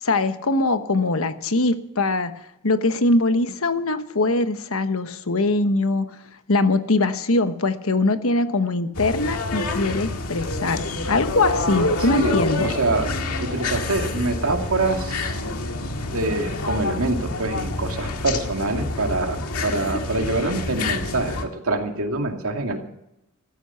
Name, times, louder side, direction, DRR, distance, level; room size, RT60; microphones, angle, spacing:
voice 1, 0.0-2.3 2.6-6.1 6.5-10.8 11.1-12.7, left 2 dB, 70° left, 10 dB, 1.2 m, -22 dB
sound 1, 8.9-21.4, left 2 dB, 85° left, 2.0 m, -27 dB
voice 2, 12.0-12.3 12.6-13.1 13.4-15.4 16.1-22.8, right 2 dB, 75° right, 4 dB, 2.3 m, -25 dB
14.5 x 14.5 x 5.8 m, 0.85 s
head